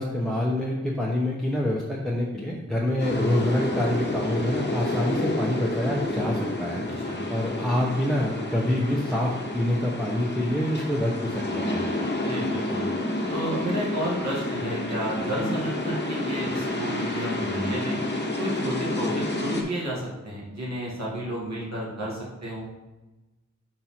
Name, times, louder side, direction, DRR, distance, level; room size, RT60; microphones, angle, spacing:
voice 1, 0.0-11.8, left 1 dB, ahead, -3 dB, 0.9 m, -26 dB
sound 1, 3.0-19.6, left 1 dB, 35° left, 1.4 m, -29 dB
voice 2, 12.1-12.9 13.3-18.0 18.4-22.6, right 1 dB, 65° right, -6 dB, 2.1 m, -31 dB
5.4 x 4.3 x 4.4 m, 1.1 s
wide cardioid pair, 55°, 29 cm